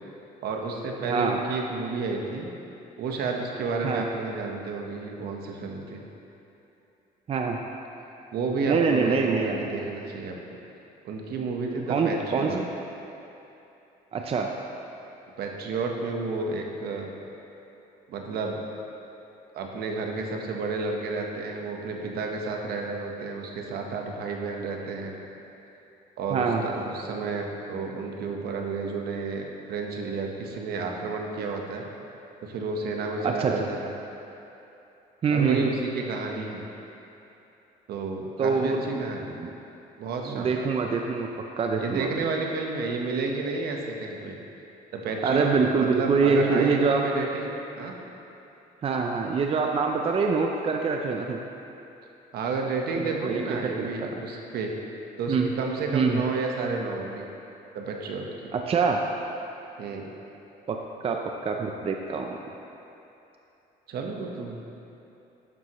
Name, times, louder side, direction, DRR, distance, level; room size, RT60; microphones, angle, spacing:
voice 1, 0.4-2.5 3.0-6.0 8.3-10.4 11.0-12.6 15.4-17.1 18.1-18.6 19.5-25.1 26.2-31.8 32.4-33.9 35.3-36.7 37.9-39.4 40.0-40.7 41.8-44.4 44.9-45.5 45.8-47.5 47.8-48.0 52.3-54.7 55.2-57.2 57.7-58.5 59.8-60.1 63.9-64.6, right 3 dB, 70° right, 1 dB, 1.2 m, -31 dB
voice 2, 1.0-1.4 3.8-4.1 7.3-7.6 8.7-9.6 11.9-12.7 14.1-14.5 26.3-26.6 33.2-33.7 35.2-35.7 38.4-38.8 39.4-39.5 40.3-41.3 41.6-42.1 45.2-47.1 48.8-51.4 53.0-54.2 55.3-55.5 55.9-56.2 58.5-59.1 60.7-60.8 61.0-62.4, right 5 dB, 35° right, 2 dB, 0.5 m, -25 dB
12.0 x 7.6 x 3.1 m, 2.9 s
cardioid pair, 110°, 17 cm